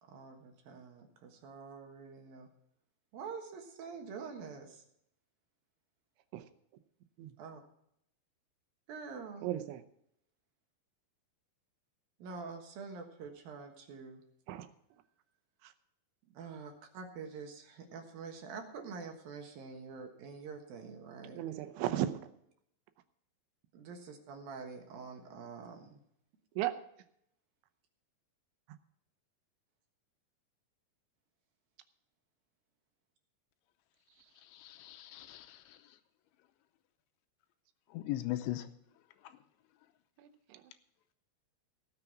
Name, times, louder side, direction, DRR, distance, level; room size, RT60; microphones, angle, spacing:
voice 1, 0.0-2.5 3.1-4.8 7.4-7.6 8.9-9.5 12.2-14.2 16.3-21.4 23.7-26.0, right 5 dB, 65° right, 3 dB, 2.7 m, -46 dB
voice 2, 9.4-9.8 14.5-14.7 15.6-15.7 21.4-22.1 26.6-26.8 40.2-40.6, right 13 dB, 80° right, 10 dB, 3.1 m, -35 dB
voice 3, 34.5-35.8 37.9-38.7, left 15 dB, 85° left, 9 dB, 3.0 m, -39 dB
17.5 x 7.1 x 5.9 m, 0.74 s
omnidirectional pair, 5.5 m